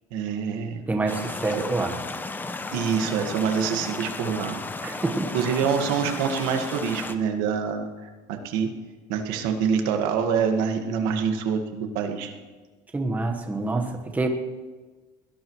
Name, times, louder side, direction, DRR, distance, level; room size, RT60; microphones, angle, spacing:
voice 1, 0.1-0.8 1.5-1.6 2.7-4.6 5.3-8.7 9.1-12.3, right 6 dB, 85° right, 5 dB, 1.7 m, -26 dB
voice 2, 0.9-1.9 4.8-5.3 12.9-14.3, right 3 dB, 10° right, 4 dB, 1.3 m, -27 dB
sound 1, 1.1-7.2, left 3 dB, 15° left, 0.7 m, -34 dB
22.0 x 17.5 x 3.1 m, 1.3 s
cardioid pair, 150°, 15 cm